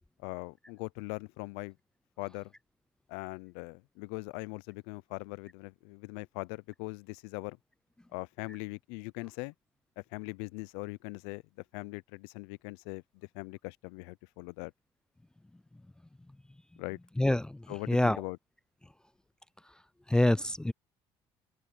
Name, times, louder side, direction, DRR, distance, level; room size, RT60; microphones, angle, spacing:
voice 1, 0.2-1.8 2.2-2.5 3.1-7.6 8.1-9.5 10.0-11.4 11.7-14.7 16.8-17.0 17.7-18.4, left 27 dB, 90° left, 0.5 m, -41 dB
voice 2, 17.2-18.2 20.1-20.7, left 1 dB, 5° left, 0.3 m, -26 dB
supercardioid pair, 85°, 11 cm